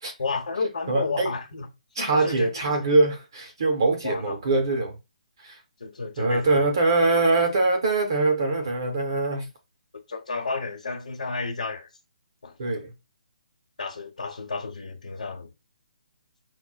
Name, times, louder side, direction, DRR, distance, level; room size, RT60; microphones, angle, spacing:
voice 1, 0.2-1.7 2.0-2.9 4.0-4.4 5.8-6.7 10.1-11.9 12.4-12.7 13.8-15.5, left 4 dB, 85° left, 1.0 m, -32 dB
voice 2, 0.9-1.3 2.0-4.9 5.4-5.6 6.2-9.5 12.6-12.9, right 3 dB, 35° right, 0.5 m, -23 dB
5.9 x 2.1 x 2.3 m
hypercardioid pair, 180°, 4 cm